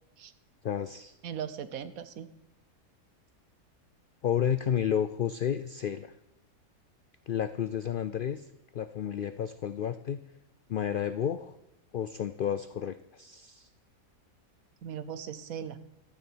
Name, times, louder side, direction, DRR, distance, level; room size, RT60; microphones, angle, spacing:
voice 1, 0.6-1.1 4.2-6.1 7.3-8.5 8.7-10.2 10.7-11.6 11.9-13.7, left 9 dB, 85° left, 13 dB, 0.4 m, -31 dB
voice 2, 1.2-2.3 14.8-15.8, right 8 dB, 75° right, 13 dB, 1.3 m, -38 dB
13.0 x 7.0 x 7.9 m, 0.90 s
omnidirectional pair, 1.5 m